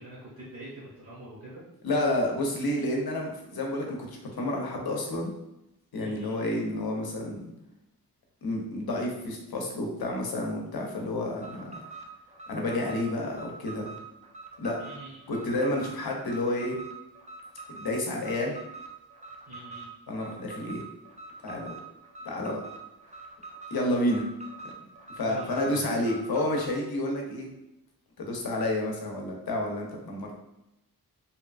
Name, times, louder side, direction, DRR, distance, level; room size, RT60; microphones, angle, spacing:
voice 1, 0.0-1.6 6.0-6.4 14.8-15.3 19.5-19.9 25.3-25.9, right 1 dB, 40° right, -8 dB, 0.8 m, -43 dB
voice 2, 1.8-5.3 5.9-7.4 8.4-11.8 12.5-13.9 14.6-14.8 15.3-16.8 17.8-18.6 20.1-20.8 21.4-21.7 22.2-22.6 23.7-24.2 25.1-27.5 28.2-30.4, left 1 dB, 75° left, 0 dB, 0.6 m, -30 dB
Alarm, 11.3-26.8, right 3 dB, 20° right, 0.3 m, -45 dB
2.8 x 2.4 x 2.3 m, 0.90 s
wide cardioid pair, 110°, 37 cm